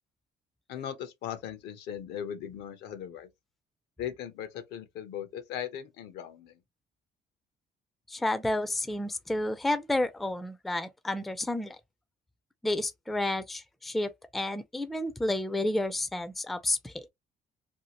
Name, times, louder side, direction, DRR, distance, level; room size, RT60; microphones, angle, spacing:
voice 1, 0.7-3.3 4.0-6.6, left 9 dB, 80° left, 0.7 m, -38 dB
voice 2, 8.1-11.8 12.6-17.1, left 1 dB, ahead, 0.3 m, -31 dB
2.7 x 2.4 x 2.8 m
cardioid pair, 110°, 17 cm